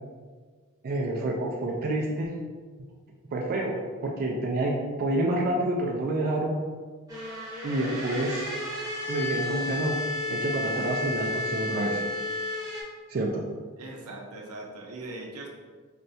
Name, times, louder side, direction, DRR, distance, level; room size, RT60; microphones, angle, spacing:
voice 1, 0.8-2.3 3.3-6.5 7.6-8.5 9.1-10.0 10.3-12.0 13.1-13.4, right 1 dB, 45° right, -2 dB, 0.4 m, -28 dB
sound 1, 7.1-12.8, left 2 dB, 15° right, 0.8 m, -32 dB
voice 2, 13.8-15.5, right 2 dB, 80° right, 0 dB, 0.6 m, -40 dB
4.2 x 2.3 x 2.6 m, 1.5 s
head